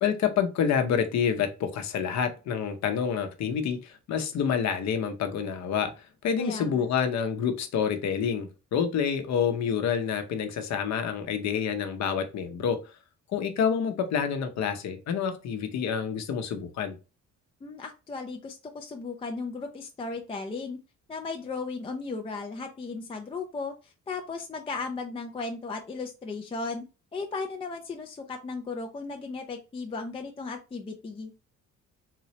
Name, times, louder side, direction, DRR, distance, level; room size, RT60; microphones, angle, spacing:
voice 1, 0.0-12.8 13.3-17.0, left 7 dB, 65° left, 7 dB, 0.8 m, -28 dB
voice 2, 6.4-6.9 17.6-20.8 21.1-26.8 27.1-31.3, left 4 dB, 20° left, 3 dB, 0.4 m, -36 dB
3.8 x 3.1 x 2.8 m, 0.30 s
cardioid pair, 145°, 29 cm